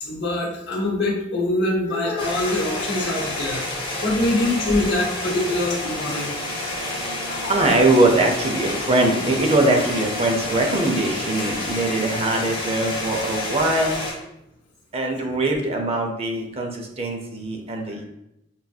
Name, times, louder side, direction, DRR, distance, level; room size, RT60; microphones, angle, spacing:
voice 1, 0.0-3.6 4.0-6.3 7.2-7.5, left 1 dB, 65° left, 0 dB, 0.9 m, -24 dB
sound 1, 2.2-14.1, left 2 dB, 30° left, 1.3 m, -29 dB
voice 2, 5.9-13.9 14.9-18.0, right 2 dB, 35° right, 2 dB, 0.6 m, -22 dB
5.5 x 2.6 x 2.3 m, 0.84 s
head